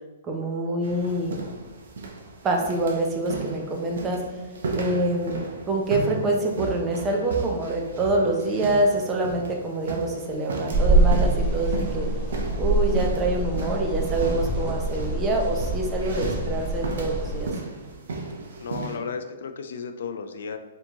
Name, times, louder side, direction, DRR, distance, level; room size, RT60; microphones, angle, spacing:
voice 1, 0.3-1.4 2.4-4.2 4.7-12.1 12.6-17.5, right 2 dB, 15° right, 1 dB, 0.5 m, -26 dB
sound 1, 0.8-19.0, right 3 dB, 70° right, 0.7 m, -35 dB
sound 2, 10.7-17.5, right 2 dB, 30° right, 1.1 m, -25 dB
voice 2, 18.6-20.6, left 6 dB, 65° left, 8 dB, 0.3 m, -34 dB
4.4 x 2.8 x 2.8 m, 1.2 s
hypercardioid pair, 170°, 0 cm